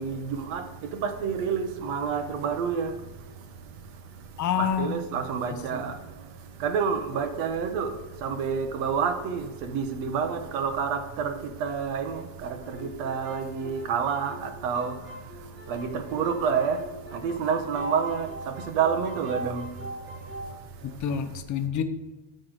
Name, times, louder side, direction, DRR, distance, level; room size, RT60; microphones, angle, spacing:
voice 1, 0.0-3.0 4.1-4.2 4.6-15.1 15.4-16.8 17.1-19.7 20.0-20.9, right 6 dB, 85° right, 1.3 m, -29 dB
voice 2, 4.4-5.0 20.8-21.8, left 8 dB, 35° left, 0.8 m, -27 dB
sound 1, 12.6-17.5 17.7-20.5, right 1 dB, 20° right, 2.8 m, -41 dB
13.0 x 4.4 x 4.9 m
cardioid pair, 135°, 50 cm